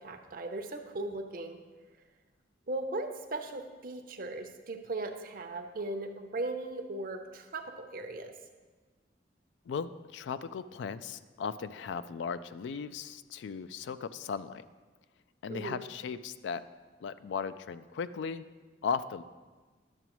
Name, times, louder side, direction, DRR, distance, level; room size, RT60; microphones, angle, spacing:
voice 1, 0.0-1.6 2.7-8.3 15.5-15.8, right 2 dB, 50° right, 6 dB, 0.6 m, -38 dB
voice 2, 9.7-14.6 15.4-16.6 17.0-18.4 18.8-19.2, left 6 dB, 70° left, 14 dB, 0.3 m, -37 dB
10.5 x 7.0 x 3.0 m, 1.3 s
head